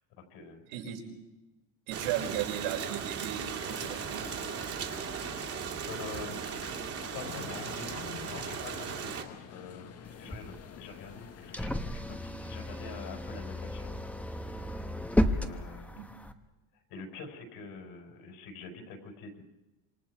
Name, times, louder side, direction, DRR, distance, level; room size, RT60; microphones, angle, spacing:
voice 1, 0.2-0.6 5.9-6.7 7.1-7.7 8.2-13.9 14.4-14.7 15.2-16.0 16.7-19.4, left 4 dB, 60° left, 4 dB, 5.1 m, -46 dB
Rain, 1.9-9.2, right 7 dB, 35° right, 2.5 m, -37 dB
voice 2, 1.9-4.2 16.0-16.1, right 10 dB, 80° right, 0 dB, 5.3 m, -35 dB
sound 1, 3.6-11.6, left 8 dB, 35° left, 1.4 m, -47 dB
sound 2, 10.1-16.3, left 1 dB, 5° left, 1.1 m, -33 dB
27.0 x 25.0 x 4.8 m, 1.1 s
cardioid pair, 135°, 41 cm